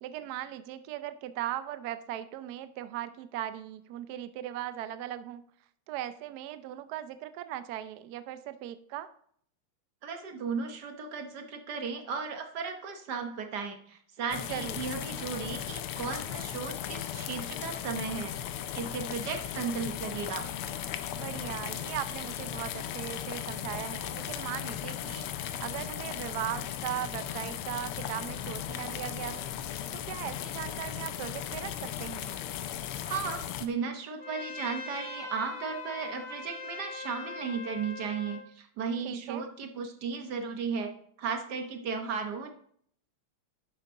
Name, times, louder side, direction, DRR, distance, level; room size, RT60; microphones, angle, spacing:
voice 1, 0.0-5.4 5.9-9.1 14.4-14.8 21.2-25.3 25.6-29.5 29.9-32.3 39.0-39.5, right 12 dB, 80° right, 12 dB, 0.8 m, -38 dB
voice 2, 10.0-18.3 18.7-20.4 33.0-40.9 41.2-42.5, right 5 dB, 55° right, 5 dB, 1.4 m, -35 dB
sound 1, 14.3-33.7, left 10 dB, 80° left, 1.5 m, -37 dB
Trumpet, 34.2-38.5, left 4 dB, 45° left, 1.0 m, -41 dB
11.0 x 6.6 x 3.6 m, 0.63 s
omnidirectional pair, 2.4 m